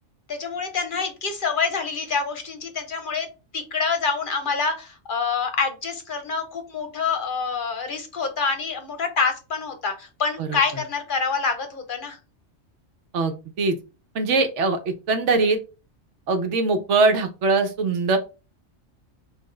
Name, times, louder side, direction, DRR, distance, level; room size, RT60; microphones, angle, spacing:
voice 1, 0.3-3.3 3.5-12.2, left 5 dB, 50° left, 7 dB, 0.8 m, -26 dB
voice 2, 10.4-10.8 13.1-13.8 14.1-15.6 16.3-18.2, right 3 dB, 80° right, 7 dB, 1.1 m, -22 dB
5.7 x 2.5 x 3.2 m, 0.31 s
omnidirectional pair, 1.2 m